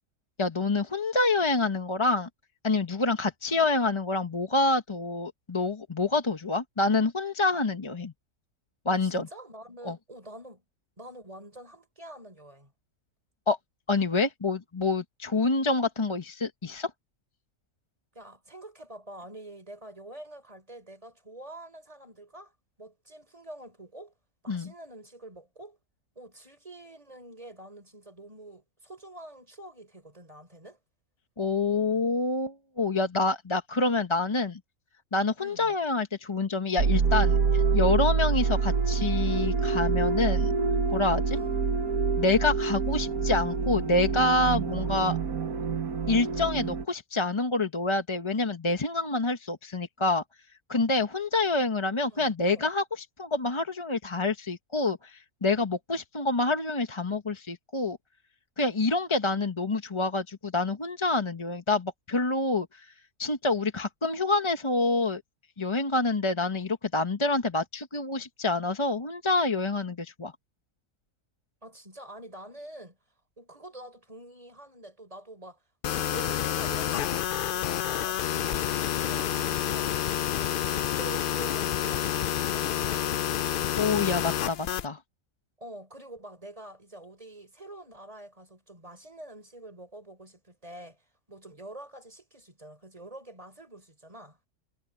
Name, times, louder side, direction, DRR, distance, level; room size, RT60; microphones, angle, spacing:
voice 1, 0.4-2.3 2.6-8.1 8.8-9.3 9.8-10.0 13.5-13.6 13.9-16.9 24.5-24.7 31.4-34.6 35.1-40.5 40.9-41.4 42.2-45.2 46.1-50.2 50.7-58.0 58.6-62.9 63.2-65.2 65.6-70.3 83.8-85.0, left 3 dB, 25° left, 0.9 m, -27 dB
voice 2, 8.9-10.6 11.0-12.7 18.1-22.5 22.8-24.1 24.4-25.8 26.1-30.8 35.4-35.7 41.3-41.6 52.1-52.7 71.6-73.0 73.4-75.6 75.9-83.2 85.6-94.4, right 1 dB, 25° right, 5.1 m, -46 dB
sound 1, 36.8-46.9, right 5 dB, 70° right, 1.7 m, -26 dB
sound 2, 75.8-84.9, left 10 dB, 80° left, 0.4 m, -29 dB
omnidirectional pair, 1.5 m